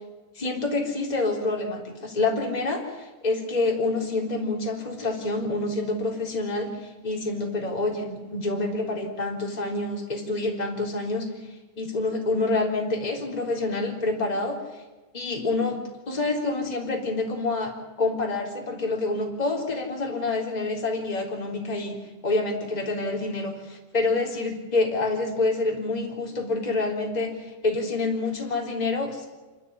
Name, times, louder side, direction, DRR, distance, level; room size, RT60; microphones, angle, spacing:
voice 1, 0.3-11.3 11.8-14.6 15.1-15.8 16.1-17.7 18.0-22.0 22.2-29.2, left 2 dB, 10° left, 0 dB, 3.1 m, -27 dB
27.0 x 14.0 x 9.9 m, 1.2 s
omnidirectional pair, 5.3 m